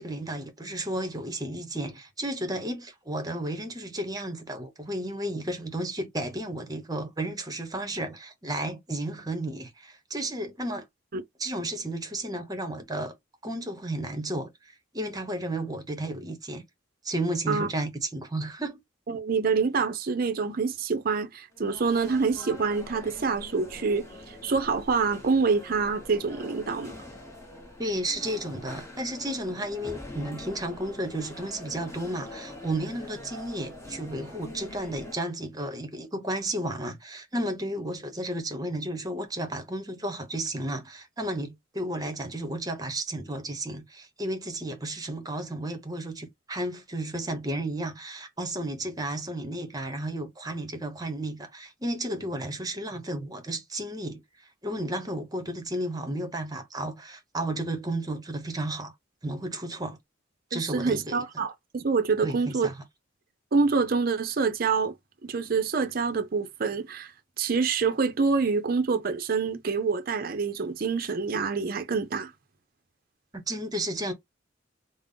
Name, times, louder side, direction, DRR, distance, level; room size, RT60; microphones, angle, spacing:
voice 1, 0.0-10.9 11.4-13.1 13.4-14.5 14.9-16.6 17.0-18.8 27.8-54.2 54.6-58.9 59.2-60.0 60.5-61.2 62.2-62.7 73.3-74.1, right 1 dB, 20° right, 0.9 m, -33 dB
voice 2, 19.1-24.1 24.4-26.9 60.5-62.7 63.5-64.9 65.2-67.1 67.4-72.3, right 4 dB, 50° right, 0.5 m, -26 dB
sound 1, 21.5-35.1, left 1 dB, 15° left, 1.1 m, -44 dB
3.6 x 2.0 x 3.7 m
head